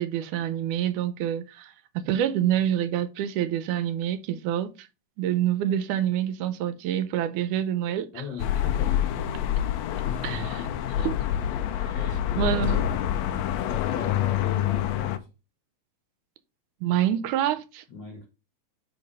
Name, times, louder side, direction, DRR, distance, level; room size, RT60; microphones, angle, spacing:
voice 1, 0.0-4.7 5.2-8.1 10.2-10.4 11.0-11.1 12.4-12.9 16.8-17.8, right 11 dB, 80° right, 2.0 m, -26 dB
voice 2, 8.1-9.0 10.0-10.7 11.9-12.6 13.6-15.3 17.9-18.3, left 5 dB, 55° left, 1.3 m, -39 dB
sound 1, 8.4-15.2, left 11 dB, 80° left, 1.6 m, -26 dB
5.1 x 4.8 x 5.3 m
omnidirectional pair, 3.7 m